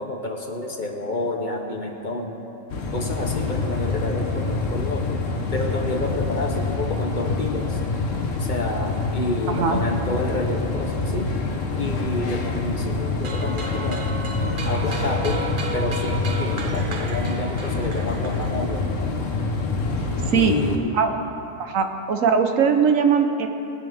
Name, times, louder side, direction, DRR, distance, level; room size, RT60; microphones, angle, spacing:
voice 1, 0.0-2.4 2.9-5.2 5.5-7.8 8.4-11.4 11.8-14.1 14.6-15.4 15.7-18.9 20.3-21.0, left 2 dB, 40° left, 2 dB, 1.1 m, -29 dB
sound 1, 2.7-20.8, left 3 dB, 70° left, 1.4 m, -26 dB
voice 2, 9.5-9.8 20.3-20.5 20.9-21.2 21.6-23.5, right 6 dB, 80° right, 6 dB, 1.3 m, -20 dB
sound 2, 13.2-18.8, right 3 dB, 45° right, 0.9 m, -34 dB
19.5 x 9.7 x 3.6 m, 2.9 s
omnidirectional pair, 1.3 m